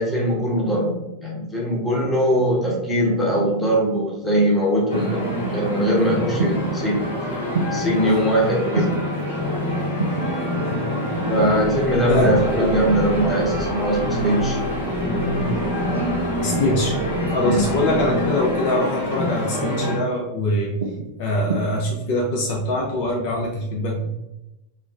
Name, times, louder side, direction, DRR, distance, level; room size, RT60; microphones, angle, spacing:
voice 1, 0.0-7.4 7.7-9.0 11.3-14.6 17.4-17.7, equal, 10° left, -5 dB, 0.9 m, -21 dB
sound 1, 2.0-2.5 3.4-3.9 4.9-5.4 6.4-6.8 7.5-8.0 8.7-9.0 10.0-10.3 11.4-11.8 12.8-13.1 14.0-14.3 15.0-15.4 16.4-16.7 17.6-17.9 18.8-19.1 19.6-19.9 20.8-21.1 21.5-21.6, right 4 dB, 65° right, 0.3 m, -29 dB
sound 2, 4.9-20.0, left 1 dB, 70° left, 0.9 m, -26 dB
sound 3, 11.0-18.8, equal, 25° right, 1.0 m, -33 dB
voice 2, 16.4-17.0 17.3-20.8 21.2-24.1, left 1 dB, 50° left, -2 dB, 0.5 m, -23 dB
3.1 x 2.0 x 2.4 m, 0.94 s
figure-of-eight pair, 90°, 0 cm